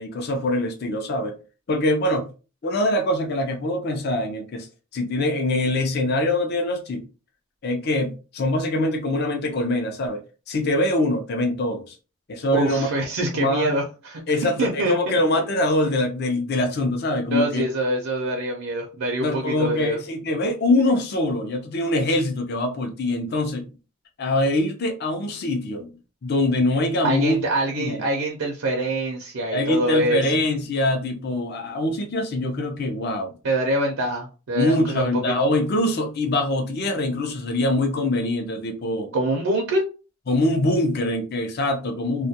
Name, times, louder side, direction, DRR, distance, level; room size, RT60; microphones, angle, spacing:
voice 1, 0.0-1.4 1.7-2.3 2.6-4.7 4.9-7.0 7.6-10.2 10.5-11.9 12.3-12.9 13.3-13.7 14.3-17.6 19.2-23.7 24.2-25.9 26.2-27.4 27.8-28.0 29.5-33.3 34.5-39.1 40.3-42.3, left 1 dB, 50° left, 0.5 m, -23 dB
voice 2, 12.5-14.2 14.6-14.9 17.3-20.0 27.0-30.3 33.4-35.3 39.1-39.8, right 1 dB, 80° right, 0.5 m, -25 dB
2.3 x 2.2 x 2.7 m
head